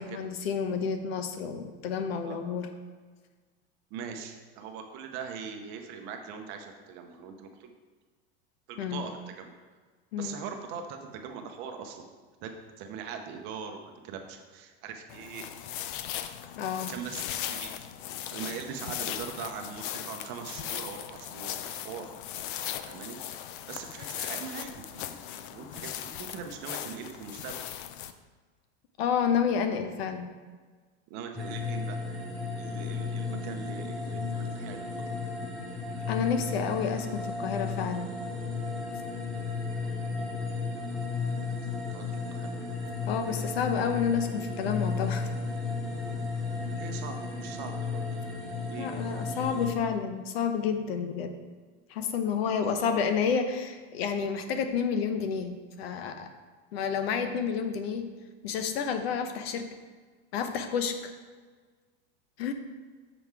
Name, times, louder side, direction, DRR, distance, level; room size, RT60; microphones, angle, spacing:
voice 1, 0.0-2.7 8.8-9.0 10.1-10.4 16.6-16.9 29.0-30.3 36.1-38.1 43.1-45.3 48.8-51.3 51.9-56.3 56.7-58.1 58.4-59.7 60.3-61.1 62.4-62.5, left 6 dB, 75° left, 8 dB, 0.9 m, -30 dB
voice 2, 2.2-2.6 3.9-7.7 8.7-9.5 10.2-12.1 12.4-15.5 16.9-17.7 18.3-22.1 22.8-23.2 23.7-27.6 31.1-32.0 32.6-35.3 39.8-40.5 41.5-42.5 46.1-46.2 46.7-48.1 48.6-49.2 52.6-53.0, right 6 dB, 35° right, 5 dB, 0.7 m, -42 dB
sound 1, 15.1-28.1, left 11 dB, 55° left, 0.5 m, -38 dB
sound 2, 31.4-49.7, left 4 dB, ahead, 0.5 m, -34 dB
7.0 x 5.5 x 4.7 m, 1.5 s
supercardioid pair, 175°, 31 cm